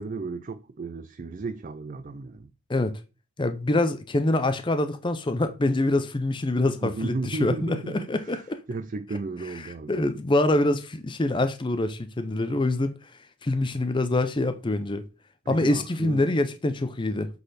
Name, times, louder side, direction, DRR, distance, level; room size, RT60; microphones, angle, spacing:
voice 1, 0.0-2.5 6.8-10.2 15.5-16.3, right 3 dB, 35° right, 0.4 m, -34 dB
voice 2, 3.4-8.6 9.9-12.9 13.4-15.0 15.5-17.3, left 2 dB, 20° left, 0.5 m, -25 dB
7.9 x 4.1 x 4.1 m
head